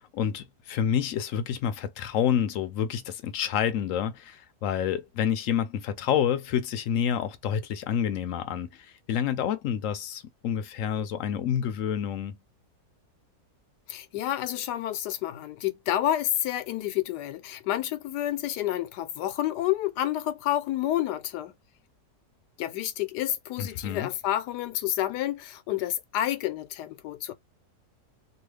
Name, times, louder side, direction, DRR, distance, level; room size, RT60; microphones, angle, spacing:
voice 1, 0.1-12.4 23.6-24.1, left 9 dB, 70° left, 0.8 m, -28 dB
voice 2, 13.9-21.6 22.6-27.3, left 13 dB, 90° left, 1.2 m, -29 dB
3.0 x 2.3 x 3.2 m
omnidirectional pair, 1.7 m